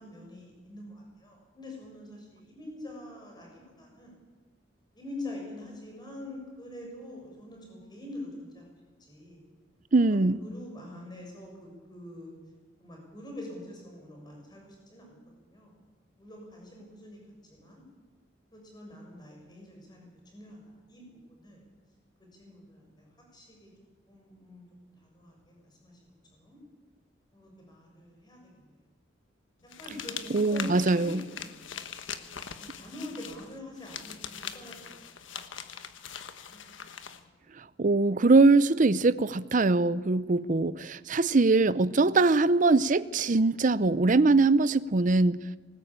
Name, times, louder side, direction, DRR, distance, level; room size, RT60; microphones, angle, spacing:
voice 1, 0.0-4.1 5.0-8.6 9.0-9.4 10.1-12.3 12.8-15.8 16.2-17.2 17.5-17.8 18.5-20.6 20.9-21.0 21.3-21.6 22.4-23.1 23.3-23.7 24.1-24.6 25.0-26.6 27.3-28.4 29.8-31.7 32.5-35.0 35.3-35.4 36.4-36.6 37.0-37.1 40.3-40.4, left 1 dB, 25° left, 0 dB, 6.8 m, -45 dB
voice 2, 9.9-10.4 30.3-31.3 37.6-45.4, right 3 dB, 45° right, 16 dB, 0.6 m, -22 dB
sound 1, 29.7-37.2, left 8 dB, 90° left, 1.4 m, -42 dB
19.5 x 19.5 x 8.9 m, 1.4 s
head